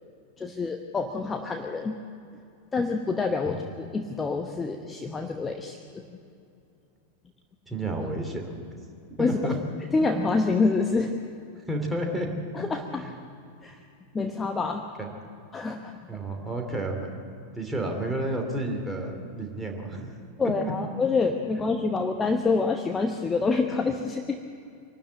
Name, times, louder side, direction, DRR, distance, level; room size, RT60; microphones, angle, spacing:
voice 1, 0.4-2.0 2.7-5.8 9.2-9.6 9.9-11.1 12.5-13.1 13.6-13.8 14.1-15.0 15.5-16.0 20.4-24.4, left 4 dB, 15° left, 5 dB, 1.0 m, -27 dB
voice 2, 7.7-8.5 9.2-9.5 11.7-12.3 13.0-13.1 15.0-15.1 16.1-17.2 17.5-20.2 20.6-20.7, right 1 dB, 5° right, 1 dB, 3.2 m, -31 dB
24.5 x 12.5 x 8.4 m, 2.6 s
figure-of-eight pair, 90°, 0 cm